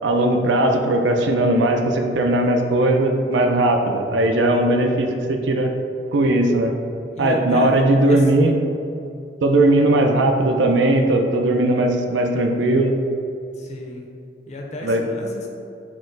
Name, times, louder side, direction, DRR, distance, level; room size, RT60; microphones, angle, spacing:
voice 1, 0.0-5.7 6.1-6.7 7.2-8.5 9.4-12.9 14.8-15.0, right 1 dB, 75° right, 4 dB, 0.5 m, -18 dB
voice 2, 7.1-8.2 13.6-14.0 14.5-15.5, left 1 dB, 40° left, 0 dB, 0.6 m, -32 dB
6.1 x 2.1 x 3.9 m, 2.6 s
head